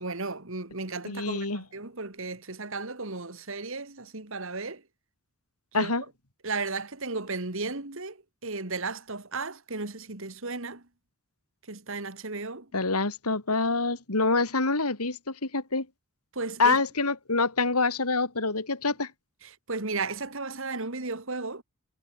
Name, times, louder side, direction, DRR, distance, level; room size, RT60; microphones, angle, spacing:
voice 1, 0.0-4.8 5.7-5.9 6.4-10.8 11.7-12.7 16.3-16.8 19.4-21.6, right 3 dB, 60° right, 2.4 m, -34 dB
voice 2, 1.1-1.6 5.7-6.0 12.7-15.9 16.6-19.1, left 3 dB, 90° left, 3.1 m, -26 dB
head